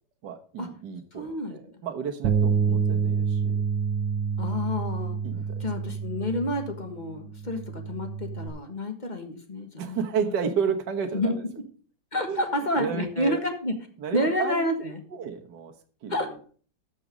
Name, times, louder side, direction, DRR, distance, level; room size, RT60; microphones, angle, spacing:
voice 1, 0.2-3.6 5.2-5.6 9.8-11.4 12.3-13.4 14.0-14.7 15.1-15.7 16.0-16.3, right 6 dB, 65° right, 4 dB, 1.7 m, -32 dB
voice 2, 1.1-1.8 2.7-3.0 4.4-5.2 5.6-10.0 11.1-11.3 12.1-13.7 14.1-15.0 16.1-16.3, left 1 dB, 25° left, 5 dB, 1.6 m, -29 dB
Bass guitar, 2.2-8.5, right 6 dB, 90° right, 1.8 m, -28 dB
13.0 x 6.1 x 5.1 m, 0.43 s
omnidirectional pair, 2.0 m